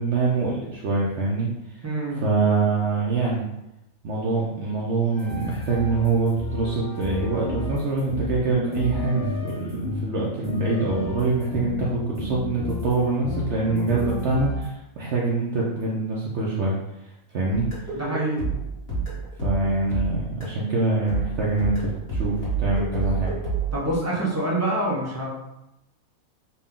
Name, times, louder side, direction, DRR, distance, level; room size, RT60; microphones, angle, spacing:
voice 1, 0.0-1.8 2.2-3.4 4.0-16.7 17.3-17.7 19.4-23.4, right 3 dB, 60° right, -4 dB, 0.8 m, -24 dB
voice 2, 1.8-2.2 17.9-18.5 23.7-25.3, right 1 dB, 20° right, -5 dB, 0.4 m, -26 dB
sound 1, 5.1-10.1 10.4-11.8 12.1-14.7, left 2 dB, 15° left, 0.8 m, -31 dB
sound 2, 17.5-20.7 21.1-23.7, right 5 dB, 45° left, 1.6 m, -29 dB
4.1 x 2.2 x 3.6 m, 0.90 s
omnidirectional pair, 1.5 m